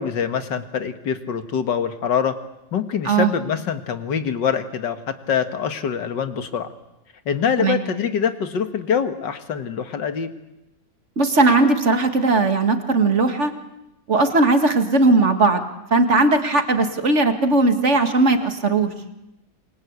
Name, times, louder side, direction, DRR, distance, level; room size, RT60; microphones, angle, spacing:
voice 1, 0.0-2.3 2.7-6.7 7.3-10.3, left 7 dB, 75° left, 9 dB, 2.2 m, -24 dB
voice 2, 11.2-13.5 14.1-18.9, right 3 dB, 40° right, 7 dB, 2.3 m, -18 dB
28.0 x 23.5 x 8.2 m, 0.93 s
omnidirectional pair, 1.9 m